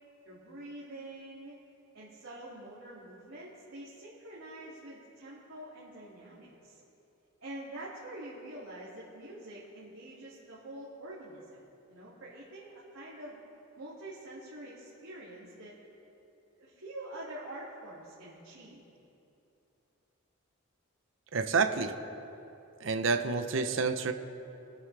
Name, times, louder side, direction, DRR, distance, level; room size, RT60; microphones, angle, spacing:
voice 1, 0.2-1.6 1.9-6.8 7.4-11.6 11.9-13.4 13.8-15.8 16.6-18.8, right 1 dB, 90° right, -8 dB, 2.5 m, -46 dB
voice 2, 21.3-22.0 22.8-24.1, right 4 dB, 65° right, 8 dB, 0.7 m, -28 dB
24.0 x 9.7 x 3.4 m, 2.9 s
head